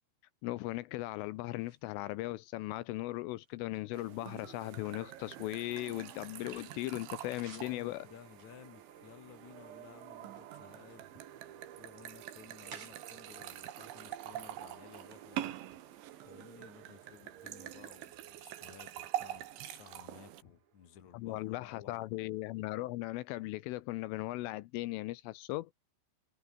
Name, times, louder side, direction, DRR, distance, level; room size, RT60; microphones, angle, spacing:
voice 1, 0.4-8.0 21.1-25.7, left 18 dB, 80° left, 3.4 m, -38 dB
sound 1, 1.5-2.5 3.1-6.6 6.9-7.8 8.3-9.6 10.0-11.7 12.1-13.0 13.7-14.5 14.8-15.0 15.4-16.4, right 4 dB, 35° right, 6.2 m, -59 dB
sound 2, 3.9-20.4, right 13 dB, 75° right, 3.9 m, -45 dB
sound 3, 4.0-22.9, right 9 dB, 90° right, 6.1 m, -59 dB
voice 2, 7.4-11.1 11.8-15.6 16.2-22.0, left 9 dB, 45° left, 3.1 m, -56 dB
omnidirectional pair, 5.8 m